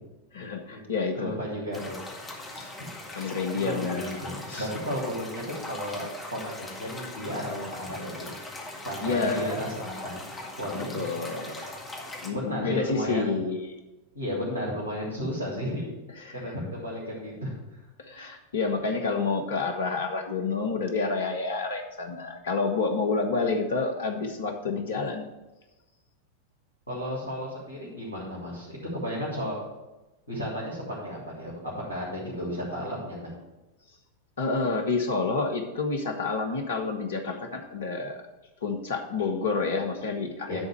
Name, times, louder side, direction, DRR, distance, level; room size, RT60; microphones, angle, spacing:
voice 1, 0.3-1.4 2.5-2.7 3.1-4.7 9.0-9.6 10.7-11.8 12.2-13.8 16.2-16.5 18.0-25.3 34.4-38.2 38.6-40.6, left 4 dB, 65° left, 5 dB, 1.3 m, -29 dB
voice 2, 1.2-2.0 3.5-8.2 8.8-10.2 10.6-11.0 12.3-13.3 14.1-15.9 16.3-17.5 26.9-29.6 30.3-31.5 31.9-33.3 40.5-40.6, equal, 85° left, -7 dB, 2.7 m, -33 dB
sound 1, 1.7-12.3, left 2 dB, 15° left, 1.9 m, -40 dB
10.5 x 4.0 x 7.6 m, 1.1 s
figure-of-eight pair, 90°, 0 cm